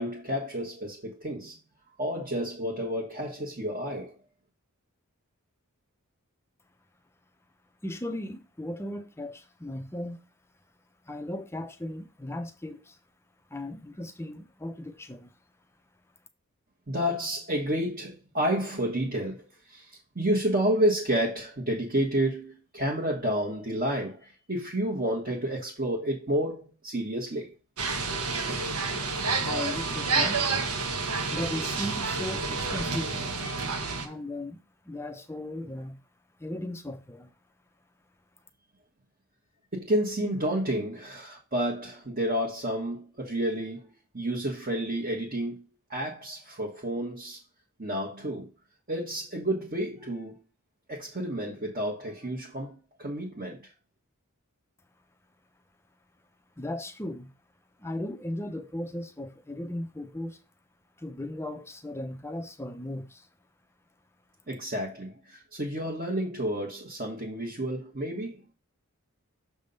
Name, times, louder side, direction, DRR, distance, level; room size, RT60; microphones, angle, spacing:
voice 1, 0.0-1.6 2.0-4.2 16.9-19.4 19.7-27.5 39.7-43.9 44.1-45.6 45.9-47.4 47.8-48.5 48.9-50.4 50.9-53.7 64.5-68.4, right 1 dB, 40° right, 1.3 m, -30 dB
voice 2, 7.8-10.3 11.0-13.0 13.5-15.3 29.4-30.4 31.3-33.3 34.0-34.6 34.8-36.0 36.4-37.3 56.6-57.3 57.8-60.4 61.0-63.3, left 1 dB, 10° left, 0.6 m, -37 dB
sound 1, 27.8-34.1, right 4 dB, 80° right, 1.1 m, -29 dB
6.8 x 3.5 x 5.3 m
head